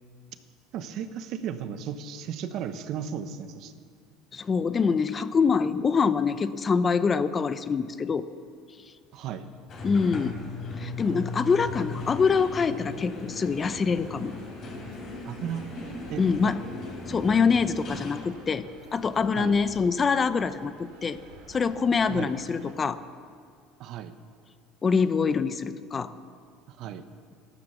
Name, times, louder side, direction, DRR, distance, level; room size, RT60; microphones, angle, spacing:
voice 1, 0.7-3.7 9.1-9.5 15.2-15.6 16.1-16.5 19.3-19.6 22.1-22.3 23.8-24.1 26.7-27.0, right 8 dB, 60° right, 10 dB, 1.1 m, -35 dB
voice 2, 4.3-8.3 9.8-10.4 10.8-14.3 16.2-16.6 17.1-18.6 18.9-21.2 21.5-23.0 24.8-26.1, left 5 dB, 25° left, 13 dB, 0.7 m, -25 dB
sound 1, 9.7-18.3, left 3 dB, 45° left, 4.5 m, -38 dB
sound 2, 11.0-22.7, right 4 dB, 80° right, 2.7 m, -51 dB
14.0 x 12.0 x 7.0 m, 2.1 s
supercardioid pair, 110°, 0 cm